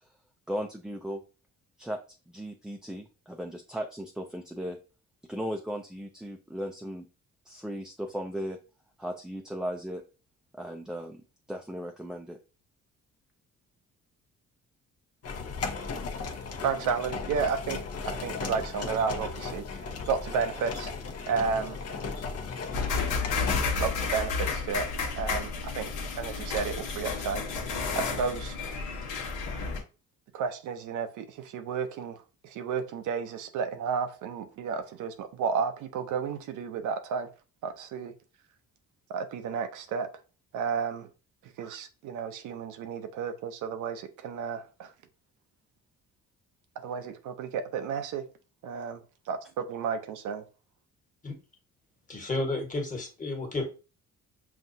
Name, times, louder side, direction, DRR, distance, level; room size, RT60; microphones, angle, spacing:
voice 1, 0.5-1.2 1.8-2.0 2.3-4.8 5.3-7.1 7.5-8.6 9.0-10.0 10.5-11.2 11.5-12.4, equal, ahead, 3 dB, 0.4 m, -36 dB
sound 1, 15.2-23.6, left 4 dB, 55° left, 0.8 m, -36 dB
voice 2, 16.6-19.8 20.1-20.9 21.3-21.8 23.8-24.9 25.2-25.9 26.2-27.6 28.0-28.8 30.3-37.3 37.6-38.1 39.1-40.1 40.5-41.1 41.4-44.9 46.8-48.2 48.6-50.4, right 6 dB, 85° right, 8 dB, 0.7 m, -32 dB
sound 2, 22.7-29.8, left 4 dB, 80° left, 1.1 m, -31 dB
voice 3, 52.1-53.7, left 2 dB, 25° left, 2 dB, 1.4 m, -32 dB
5.8 x 2.3 x 2.7 m, 0.33 s
cardioid pair, 90°, 30 cm